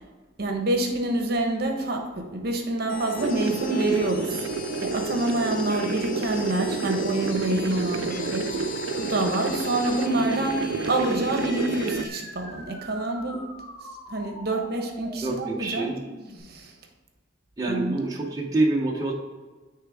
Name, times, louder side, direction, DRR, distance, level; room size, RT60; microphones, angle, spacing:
voice 1, 0.4-4.5 4.8-13.4 14.1-15.9 16.5-16.7 17.7-18.0, right 2 dB, 50° right, 3 dB, 0.9 m, -27 dB
sound 1, 2.9-12.1, left 4 dB, 45° left, 0.5 m, -37 dB
sound 2, 3.2-12.1, right 5 dB, 80° right, 0.3 m, -30 dB
sound 3, 11.4-16.4, equal, 10° left, 1.9 m, -43 dB
voice 2, 15.2-16.0 17.6-19.1, right 2 dB, 20° right, -2 dB, 0.7 m, -26 dB
9.4 x 3.4 x 3.5 m, 1.3 s
head